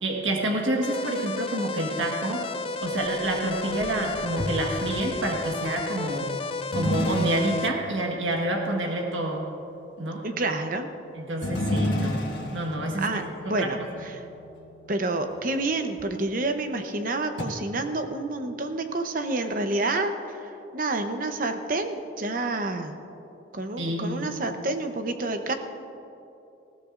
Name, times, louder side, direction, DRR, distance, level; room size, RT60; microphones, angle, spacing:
voice 1, 0.0-2.5 2.8-6.3 6.7-9.5 10.0-10.2 11.1-12.2 12.5-13.1 13.4-13.7 23.8-24.3, right 1 dB, 85° right, 0 dB, 1.5 m, -28 dB
sound 1, 0.8-7.7, left 4 dB, 30° left, 0.4 m, -32 dB
sound 2, 2.8-5.5 6.7-8.0 11.4-15.4 15.9-16.0 17.4-17.5, left 1 dB, 70° left, 1.4 m, -32 dB
voice 2, 10.2-10.9 13.0-14.1 14.9-23.0 23.5-25.5, right 2 dB, 45° right, 7 dB, 0.8 m, -29 dB
19.5 x 15.5 x 2.6 m, 2.8 s
head